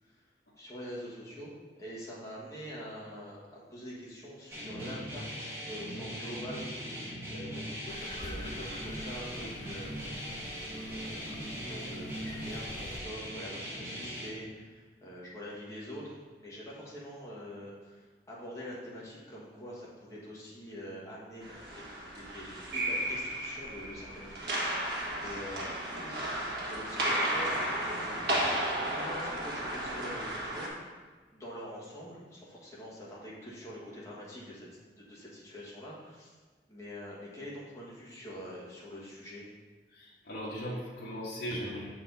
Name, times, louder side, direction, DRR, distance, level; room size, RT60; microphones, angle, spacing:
voice 1, 0.6-28.1 28.9-30.7 31.3-34.7 35.0-36.3 36.7-39.5, equal, 15° left, -7 dB, 1.4 m, -45 dB
sound 1, 4.5-14.3, equal, 15° right, 1.1 m, -40 dB
sound 2, 7.9-13.0, left 1 dB, 40° left, 0.7 m, -47 dB
sound 3, 21.4-30.7, right 1 dB, 60° right, 1.3 m, -33 dB
voice 2, 39.9-41.9, equal, 65° left, -7 dB, 1.3 m, -38 dB
6.4 x 4.3 x 4.0 m, 1.4 s
head